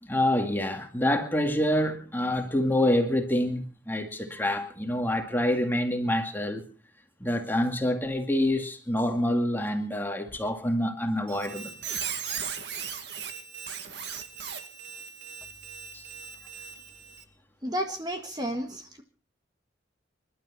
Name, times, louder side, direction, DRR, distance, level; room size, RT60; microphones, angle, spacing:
voice 1, 0.0-6.6 7.2-11.7 15.9-16.0, left 1 dB, 10° left, 2.1 m, -27 dB
Squeak, 11.3-17.2, right 7 dB, 65° right, 2.2 m, -38 dB
voice 2, 17.6-19.0, equal, 20° right, 1.6 m, -32 dB
27.0 x 12.0 x 4.1 m
head